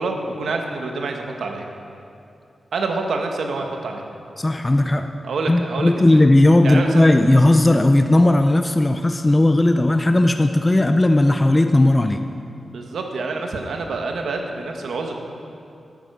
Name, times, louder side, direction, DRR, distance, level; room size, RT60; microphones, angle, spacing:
voice 1, 0.0-1.6 2.7-4.0 5.2-6.2 6.6-7.1 12.7-15.2, right 3 dB, 90° right, 3 dB, 1.4 m, -27 dB
voice 2, 4.4-5.1 5.5-12.2, left 1 dB, 15° left, 7 dB, 0.4 m, -16 dB
12.5 x 9.1 x 6.7 m, 2.6 s
wide cardioid pair, 155°, 0 cm